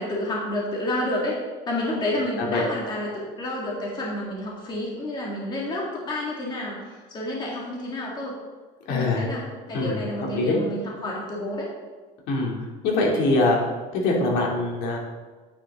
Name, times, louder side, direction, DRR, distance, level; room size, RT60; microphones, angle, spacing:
voice 1, 0.0-1.4 1.7-8.4 8.9-9.4 9.7-11.7, left 1 dB, 25° left, -3 dB, 2.3 m, -29 dB
voice 2, 8.8-9.3 9.7-10.0 10.3-10.6 12.3-12.5 12.8-13.6 13.9-15.0, left 2 dB, 75° left, -2 dB, 3.2 m, -23 dB
10.5 x 9.4 x 3.9 m, 1.4 s
cardioid pair, 160°, 17 cm